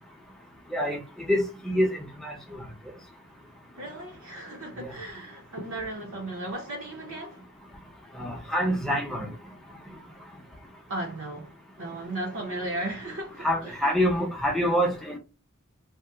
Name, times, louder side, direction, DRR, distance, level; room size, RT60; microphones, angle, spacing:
voice 1, 0.7-2.6 4.8-4.9 8.1-9.3 13.4-15.2, equal, ahead, 0.6 m, -26 dB
voice 2, 3.8-7.4 10.9-11.5 11.8-13.7, right 1 dB, 65° right, 0.7 m, -35 dB
2.8 x 2.0 x 3.3 m
head